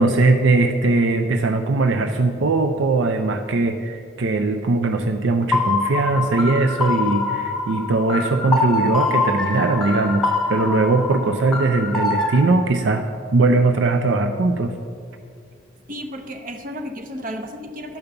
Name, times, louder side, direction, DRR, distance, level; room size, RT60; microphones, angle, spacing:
voice 1, 0.0-14.7, right 3 dB, 70° right, 6 dB, 0.5 m, -20 dB
sound 1, 5.5-12.4, left 3 dB, ahead, 1.3 m, -24 dB
voice 2, 15.9-18.0, equal, 45° right, 5 dB, 0.9 m, -33 dB
12.0 x 5.2 x 7.0 m, 2.4 s
head